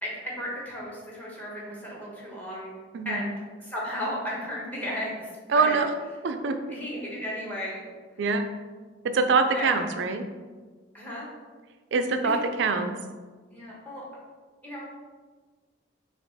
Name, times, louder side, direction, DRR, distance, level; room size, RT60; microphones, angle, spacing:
voice 1, 0.0-2.7 3.0-3.3 3.6-5.8 6.7-7.9 9.5-9.8 10.9-11.3 12.2-12.4 13.5-14.0 14.6-14.8, equal, 10° left, -5 dB, 1.1 m, -34 dB
voice 2, 5.5-5.9 6.2-6.6 8.2-8.4 9.0-10.2 11.9-13.0, right 4 dB, 70° right, 7 dB, 0.4 m, -24 dB
4.4 x 2.5 x 4.0 m, 1.4 s
head